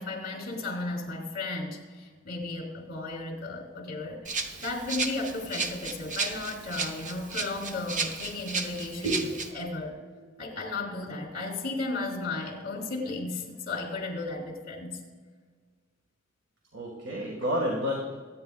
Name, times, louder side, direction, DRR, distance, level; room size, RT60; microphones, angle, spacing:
voice 1, 0.0-4.2 4.6-9.1 9.5-10.0 10.4-15.0, left 2 dB, 50° left, 1 dB, 3.0 m, -34 dB
Rattle (instrument), 4.2-9.5, right 4 dB, 40° right, 0.9 m, -34 dB
voice 2, 9.0-9.7 10.2-10.4 16.7-18.2, equal, 65° right, -2 dB, 1.8 m, -31 dB
23.5 x 9.4 x 2.4 m, 1.5 s
head